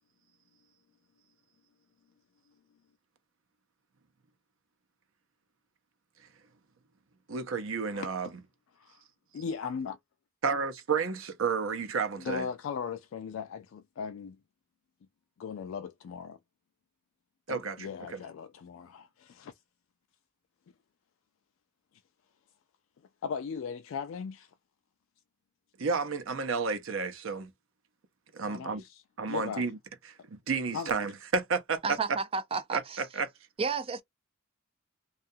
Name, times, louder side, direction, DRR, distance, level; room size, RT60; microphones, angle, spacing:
voice 1, 7.3-8.3 10.4-12.5 17.5-18.2 25.8-27.5 28.3-28.8 29.2-29.8 30.3-32.0 32.7-32.8 33.2-33.3, right 5 dB, 65° right, 0.7 m, -31 dB
voice 2, 9.3-10.0 12.2-14.4 15.4-16.4 17.5-19.5 23.2-24.5 28.4-29.0 29.3-29.6 30.7-30.9, left 6 dB, 65° left, 0.3 m, -38 dB
voice 3, 31.8-33.0 33.6-34.0, right 5 dB, 25° right, 0.4 m, -32 dB
2.7 x 2.3 x 2.5 m
head